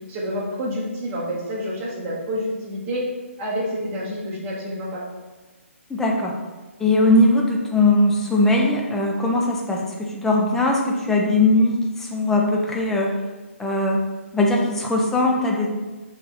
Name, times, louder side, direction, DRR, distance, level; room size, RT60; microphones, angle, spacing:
voice 1, 0.1-3.0 3.4-5.0, equal, 20° right, -5 dB, 1.2 m, -28 dB
voice 2, 5.9-6.4 6.8-13.1 13.6-14.0 14.3-15.7, left 2 dB, 5° left, -1 dB, 0.5 m, -20 dB
4.4 x 3.2 x 3.8 m, 1.2 s
figure-of-eight pair, 140°, 7 cm